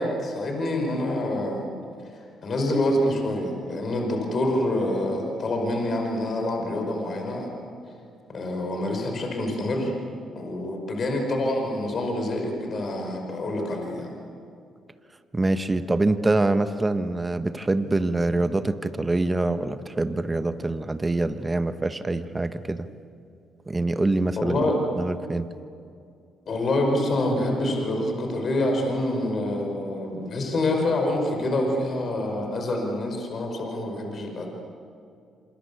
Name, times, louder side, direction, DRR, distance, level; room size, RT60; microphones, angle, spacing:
voice 1, 0.0-1.7 2.4-7.5 8.3-9.9 10.4-14.1 24.4-24.8 26.5-34.5, left 1 dB, 50° left, 3 dB, 5.3 m, -26 dB
voice 2, 15.3-22.9 23.7-24.7 25.0-25.5, right 2 dB, 20° right, 10 dB, 1.3 m, -25 dB
27.5 x 26.5 x 7.0 m, 2.4 s
hypercardioid pair, 45°, 0 cm